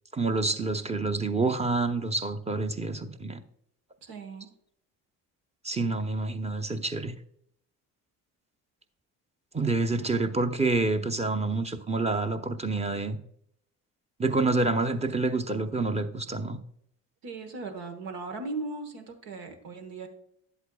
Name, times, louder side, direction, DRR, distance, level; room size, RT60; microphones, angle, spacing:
voice 1, 0.1-3.4 5.6-7.2 9.5-13.2 14.2-16.6, right 3 dB, 15° right, 7 dB, 0.8 m, -28 dB
voice 2, 4.0-4.5 17.2-20.1, right 3 dB, 80° right, 6 dB, 1.4 m, -38 dB
11.0 x 8.1 x 2.3 m, 0.70 s
hypercardioid pair, 55°, 42 cm